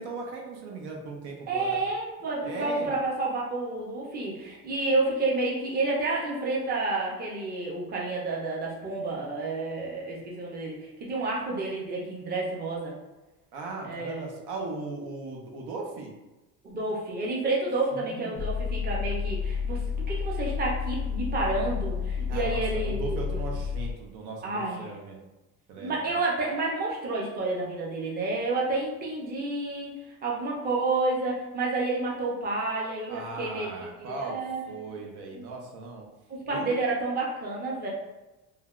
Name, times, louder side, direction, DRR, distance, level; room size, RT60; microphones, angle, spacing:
voice 1, 0.0-1.8 2.4-2.9 13.5-16.1 17.9-18.4 22.3-25.2 25.7-26.1 33.1-34.4 34.7-36.0 36.5-36.7, right 3 dB, 85° right, 0 dB, 0.7 m, -38 dB
voice 2, 1.5-12.9 13.8-14.3 16.6-19.8 20.1-23.4 24.4-24.9 25.8-29.9 30.2-33.7 34.0-34.8 35.3-35.4 36.3-37.9, right 2 dB, 25° right, -3 dB, 0.6 m, -30 dB
sound 1, 18.4-23.9, left 6 dB, 40° left, 0.4 m, -30 dB
3.2 x 2.2 x 2.3 m, 1.0 s
cardioid pair, 140°, 38 cm